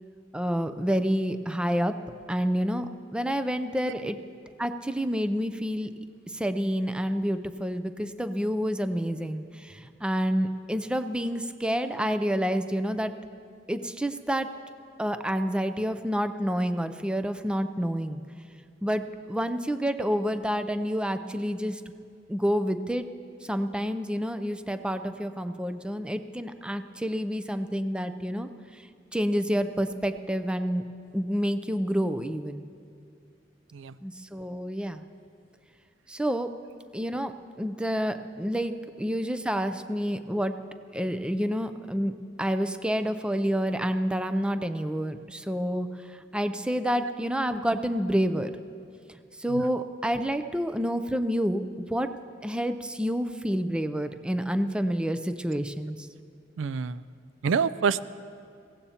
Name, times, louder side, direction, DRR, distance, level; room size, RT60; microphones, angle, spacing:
voice 1, 0.3-1.9 2.3-4.2 4.6-5.9 6.3-13.1 13.7-14.5 15.0-18.2 18.8-21.9 22.3-23.1 23.4-28.8 29.1-30.8 31.1-32.7 34.0-35.0 36.1-36.5 36.9-40.6 40.9-42.1 42.4-48.5 49.4-52.1 52.4-56.1, equal, 5° right, 9 dB, 0.4 m, -28 dB
voice 2, 56.6-57.0 57.4-58.1, right 6 dB, 85° right, 17 dB, 0.4 m, -27 dB
22.5 x 16.5 x 2.9 m, 2.3 s
head